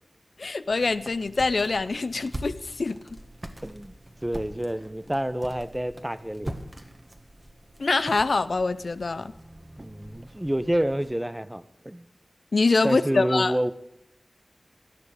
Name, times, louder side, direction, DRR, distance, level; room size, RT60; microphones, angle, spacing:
voice 1, 0.4-3.0 7.8-9.3 12.5-13.6, left 3 dB, 80° left, 13 dB, 0.6 m, -24 dB
sound 1, 0.6-11.2, right 1 dB, 30° right, 1.8 m, -43 dB
voice 2, 3.6-3.9 4.2-6.5 9.8-12.0 12.8-13.7, right 1 dB, 15° right, 13 dB, 0.8 m, -28 dB
18.0 x 11.5 x 5.0 m, 0.80 s
wide cardioid pair, 55°, 0 cm